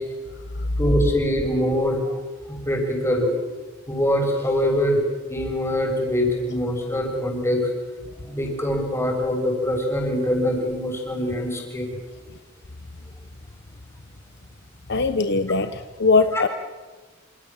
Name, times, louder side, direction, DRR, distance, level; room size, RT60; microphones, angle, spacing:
voice 1, 0.8-2.0 2.5-3.3 3.9-5.0 5.3-7.6 8.2-11.9 16.3-16.4, equal, 15° left, 1 dB, 7.0 m, -23 dB
voice 2, 14.9-16.5, left 3 dB, 60° left, 9 dB, 1.1 m, -21 dB
28.0 x 27.5 x 7.4 m, 1.3 s
head